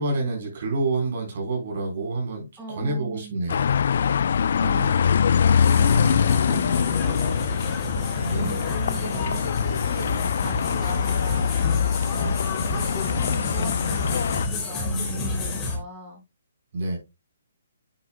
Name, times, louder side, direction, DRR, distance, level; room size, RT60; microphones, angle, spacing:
voice 1, 0.0-2.5 2.8-3.7 8.2-8.6 14.9-15.4 16.7-17.0, right 2 dB, 55° right, 4.2 m, -28 dB
voice 2, 2.6-3.4 4.6-7.6 7.9-11.8 12.1-12.4 12.7-16.2, right 2 dB, 15° right, 4.4 m, -40 dB
sound 1, 3.5-14.5, left 7 dB, 60° left, 0.4 m, -23 dB
sound 2, 5.6-15.8, left 3 dB, 20° left, 2.9 m, -30 dB
9.8 x 7.5 x 2.2 m
hypercardioid pair, 140°, 0 cm